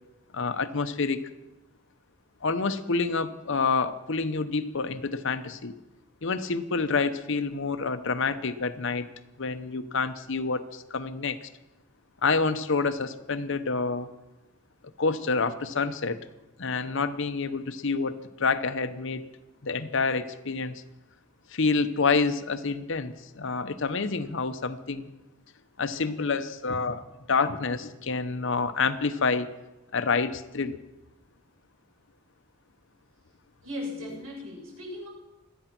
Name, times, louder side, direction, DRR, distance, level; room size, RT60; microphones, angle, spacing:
voice 1, 0.3-1.2 2.4-5.8 6.2-9.1 9.4-11.5 12.2-14.1 15.0-16.2 16.6-19.2 19.6-20.8 21.5-25.1 25.8-27.0 27.3-29.5 29.9-30.8, left 4 dB, 65° left, 10 dB, 0.9 m, -28 dB
voice 2, 33.6-35.1, left 1 dB, 90° right, -3 dB, 7.2 m, -37 dB
25.0 x 9.1 x 6.0 m, 1.0 s
head